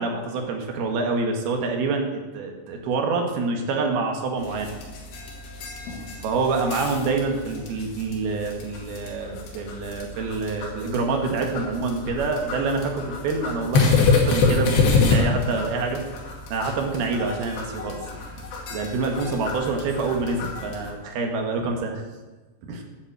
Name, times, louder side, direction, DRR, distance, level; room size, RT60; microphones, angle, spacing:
voice 1, 0.0-4.7 6.2-16.0 16.5-18.0 18.3-18.4 18.7-22.0 22.6-22.8, right 3 dB, 70° right, 3 dB, 3.3 m, -26 dB
sound 1, 4.4-20.9, left 4 dB, 85° left, 4.3 m, -27 dB
10.5 x 8.0 x 7.8 m, 1.2 s
omnidirectional pair, 4.7 m